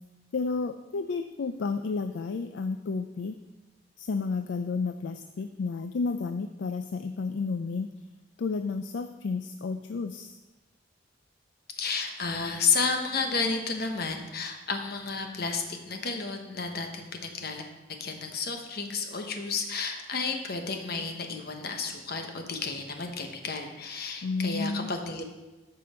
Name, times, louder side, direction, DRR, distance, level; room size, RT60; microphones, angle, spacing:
voice 1, 0.3-3.3 4.0-7.9 8.4-10.4 24.2-24.9, left 4 dB, 70° left, 8 dB, 0.4 m, -31 dB
voice 2, 11.8-17.7 18.0-25.2, left 4 dB, 55° left, 4 dB, 1.1 m, -31 dB
13.5 x 5.5 x 4.3 m, 1.1 s
head